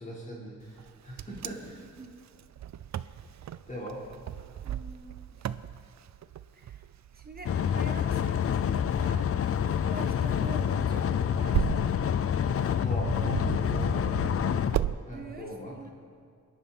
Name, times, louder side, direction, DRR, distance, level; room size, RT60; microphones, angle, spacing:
voice 1, 0.0-1.8 3.7-4.0 12.8-13.2 13.7-14.2 15.1-15.8, equal, 25° left, -5 dB, 4.0 m, -40 dB
Wind, 0.8-15.0, right 11 dB, 60° right, 0.5 m, -37 dB
voice 2, 1.8-2.2 4.6-5.5 6.5-6.8 7.1-8.2 8.7-9.3 9.6-11.7 13.2-13.4 15.1-15.9, right 2 dB, 30° right, 3 dB, 1.5 m, -45 dB
sound 1, 7.4-14.8, left 8 dB, 50° left, 0.5 m, -27 dB
27.5 x 10.5 x 4.3 m, 2.2 s
wide cardioid pair, 155°, 31 cm